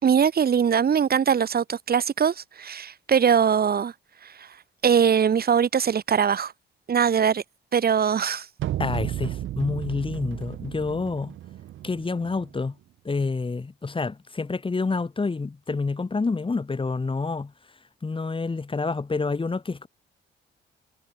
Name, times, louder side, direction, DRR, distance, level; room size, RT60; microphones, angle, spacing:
voice 1, 0.0-3.9 4.4-4.5 4.8-6.5 6.9-7.4 7.7-8.5, right 7 dB, 50° right, 4.9 m, -21 dB
sound 1, 8.6-12.6, right 13 dB, 80° right, 3.7 m, -33 dB
voice 2, 8.8-11.3 11.8-12.7 13.0-17.5 18.0-19.9, left 4 dB, 25° left, 4.8 m, -28 dB
cardioid pair, 90°, 20 cm